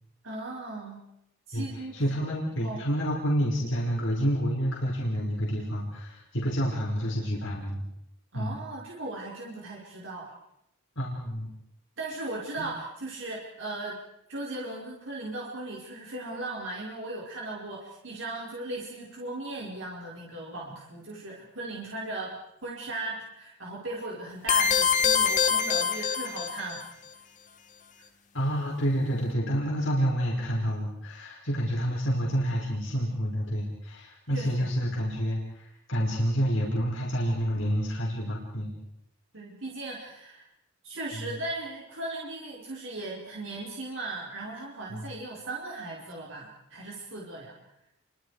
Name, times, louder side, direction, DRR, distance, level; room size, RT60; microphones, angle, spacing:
voice 1, 0.2-1.0 1.5-2.0 2.6-2.8 8.3-10.3 12.0-14.0 14.3-22.4 22.6-26.8 34.3-34.9 39.3-40.4 40.8-47.6, right 2 dB, 65° right, -3 dB, 4.8 m, -37 dB
voice 2, 1.9-7.8 8.3-8.6 11.0-11.5 28.3-38.7 41.1-41.4 44.9-45.1, equal, 65° left, -4 dB, 5.6 m, -28 dB
sound 1, 24.5-26.8, left 6 dB, 40° left, 1.9 m, -24 dB
30.0 x 24.5 x 5.0 m, 0.81 s
head